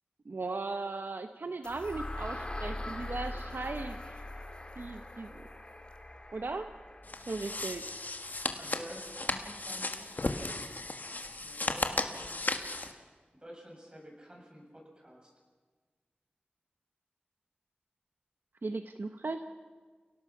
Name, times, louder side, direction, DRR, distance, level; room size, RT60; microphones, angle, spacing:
voice 1, 0.3-4.0 4.8-5.4 6.3-6.7 7.3-7.8 18.6-19.4, right 3 dB, 75° right, 7 dB, 0.9 m, -37 dB
sound 1, 1.6-9.6, left 1 dB, 30° left, 2.1 m, -43 dB
sound 2, 7.0-12.9, left 2 dB, 55° left, 1.6 m, -35 dB
voice 2, 8.6-10.7 11.4-12.4 13.4-15.3, equal, 25° right, -1 dB, 7.3 m, -50 dB
29.5 x 17.5 x 5.9 m, 1.4 s
wide cardioid pair, 60°, 3 cm